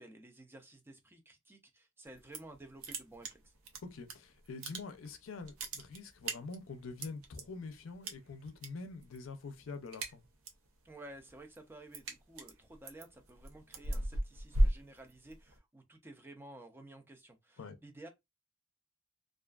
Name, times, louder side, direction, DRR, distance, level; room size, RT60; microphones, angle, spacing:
voice 1, 0.0-3.5 10.8-18.1, right 1 dB, 10° right, 0.4 m, -53 dB
sound 1, 2.1-2.6 2.8-4.1 4.5-5.1 5.4-7.4 8.0-8.7 9.0-9.3 9.6-10.7 11.1-15.6, right 1 dB, 85° right, 0.5 m, -35 dB
voice 2, 3.8-10.2 17.6-17.8, left 4 dB, 75° left, 0.5 m, -45 dB
2.4 x 2.3 x 2.3 m
head